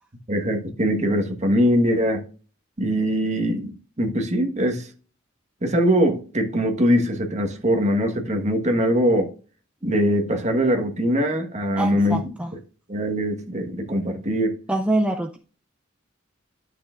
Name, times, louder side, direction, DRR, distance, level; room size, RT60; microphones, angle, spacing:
voice 1, 0.3-2.2 2.8-4.9 5.6-9.3 9.8-12.3 12.9-14.6, equal, 35° right, 1.3 m, -22 dB
voice 2, 11.8-12.5 14.7-15.4, right 1 dB, 5° right, 0.5 m, -24 dB
11.5 x 6.3 x 2.5 m
head